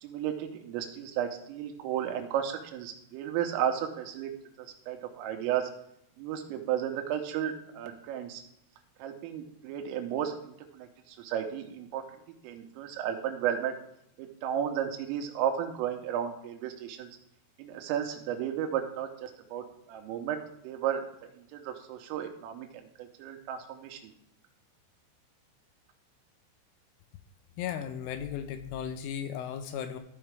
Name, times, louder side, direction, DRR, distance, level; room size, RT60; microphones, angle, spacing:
voice 1, 0.0-4.3 4.6-5.7 6.2-8.4 9.0-12.0 12.4-13.8 14.2-17.1 17.6-20.4 20.6-21.1 21.4-24.1, right 9 dB, 85° right, 5 dB, 3.4 m, -33 dB
voice 2, 27.6-30.0, left 9 dB, 85° left, 9 dB, 3.0 m, -36 dB
14.5 x 4.9 x 3.4 m, 0.76 s
omnidirectional pair, 5.9 m